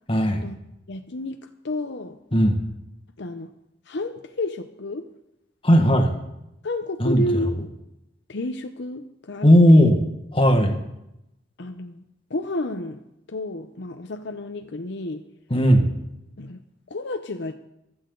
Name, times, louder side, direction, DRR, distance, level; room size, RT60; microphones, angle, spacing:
voice 1, 0.1-0.4 2.3-2.6 5.6-6.1 7.0-7.2 9.4-10.0 10.3-10.8 15.5-15.9, equal, 30° left, 4 dB, 1.7 m, -16 dB
voice 2, 0.9-1.4 1.6-2.2 3.2-3.5 3.9-5.0 6.6-7.5 8.3-9.9 11.6-12.0 12.3-13.0 13.3-15.2 16.4-16.6 16.9-17.5, left 2 dB, 65° left, 6 dB, 0.7 m, -31 dB
26.5 x 8.8 x 3.9 m, 0.87 s
head